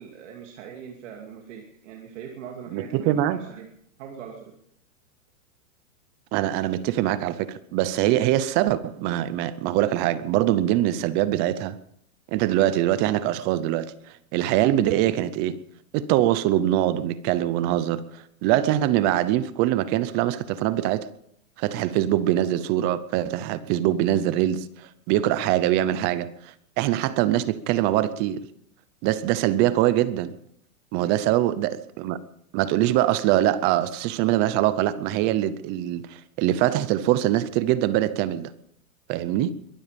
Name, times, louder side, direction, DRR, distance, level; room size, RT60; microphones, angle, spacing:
voice 1, 0.0-3.7 4.0-4.5 30.9-31.3, right 7 dB, 60° right, 2.7 m, -41 dB
voice 2, 2.7-3.4 6.3-11.8 12.3-15.6 15.9-21.1 21.6-28.5 29.0-30.3 30.9-32.2 32.5-38.5 39.1-39.5, right 13 dB, 25° right, 0.6 m, -23 dB
22.5 x 12.5 x 5.2 m
hypercardioid pair, 150°, 42 cm